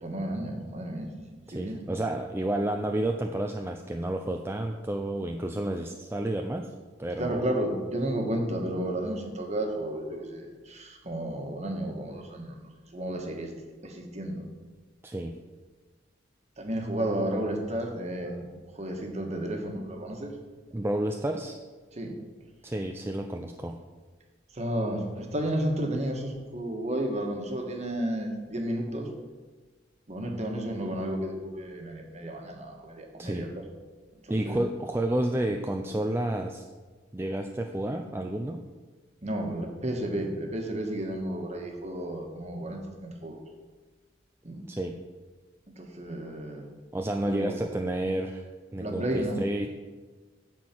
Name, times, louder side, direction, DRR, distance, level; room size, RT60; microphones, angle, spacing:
voice 1, 0.0-1.1 1.5-1.8 7.2-13.5 13.8-14.4 16.6-20.3 21.9-22.1 24.5-29.1 30.1-33.5 34.2-34.7 39.2-43.4 44.4-44.7 45.8-46.6 47.2-47.6 48.8-49.4, right 1 dB, 40° right, 2 dB, 1.5 m, -32 dB
voice 2, 1.5-6.7 7.0-7.4 15.0-15.3 20.7-21.6 22.6-23.8 33.2-33.5 34.3-36.6 37.1-38.6 44.7-44.9 46.9-48.5 48.7-49.7, right 1 dB, 15° right, 3 dB, 0.4 m, -30 dB
10.5 x 4.5 x 7.4 m, 1.4 s
head